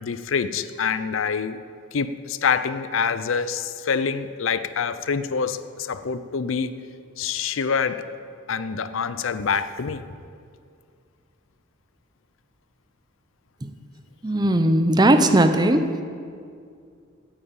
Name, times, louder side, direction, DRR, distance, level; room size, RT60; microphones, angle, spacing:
voice 1, 0.0-1.6 1.9-6.7 7.2-8.1 8.5-10.0, left 6 dB, 80° left, 13 dB, 0.5 m, -26 dB
voice 2, 14.2-15.9, right 1 dB, 20° right, 8 dB, 0.6 m, -18 dB
8.9 x 8.6 x 8.8 m, 2.3 s
head